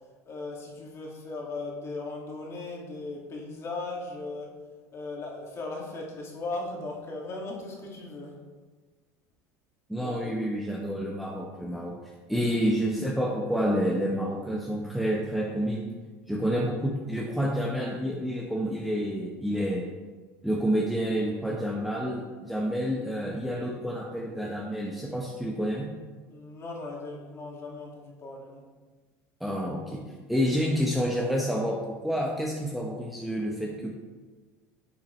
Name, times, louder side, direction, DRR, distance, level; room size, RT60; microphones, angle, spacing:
voice 1, 0.3-4.5 4.9-8.4 10.0-10.4 12.3-12.4 26.3-28.6, left 3 dB, 35° left, -2 dB, 2.3 m, -38 dB
voice 2, 9.9-12.0 12.3-15.8 16.3-19.9 20.4-25.9 29.4-30.0 30.3-33.9, equal, ahead, -2 dB, 1.0 m, -29 dB
10.5 x 5.8 x 3.2 m, 1.3 s
supercardioid pair, 100°, 8 cm